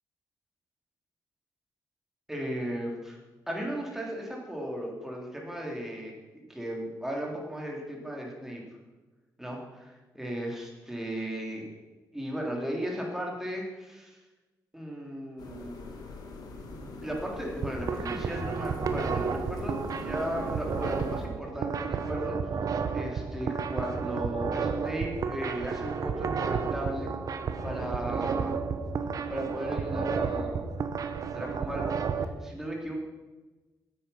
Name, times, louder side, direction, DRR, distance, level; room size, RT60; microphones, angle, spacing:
voice 1, 2.3-3.2 3.5-8.6 9.4-11.7 12.1-14.2 14.7-15.8 16.7-22.5 22.9-27.1 27.6-28.6 29.3-30.6 31.3-32.1 32.4-32.9, equal, 5° right, -1 dB, 3.2 m, -36 dB
sound 1, 15.4-21.3, left 3 dB, 70° left, 1.8 m, -42 dB
sound 2, 17.5-32.2, right 5 dB, 55° right, 0.9 m, -32 dB
9.5 x 8.6 x 5.7 m, 1.2 s
cardioid pair, 95°, 7 cm